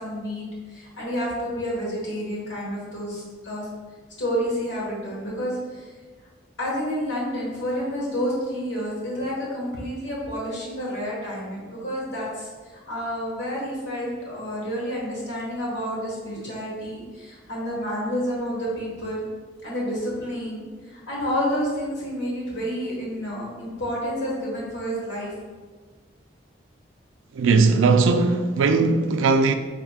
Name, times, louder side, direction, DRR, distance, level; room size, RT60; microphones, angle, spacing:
voice 1, 0.0-3.7 4.2-5.9 6.6-19.3 19.6-20.6 20.9-25.3, equal, 65° left, 1.5 m, -29 dB
voice 2, 27.4-29.5, right 4 dB, 85° right, 0.3 m, -19 dB
4.6 x 3.5 x 2.4 m
head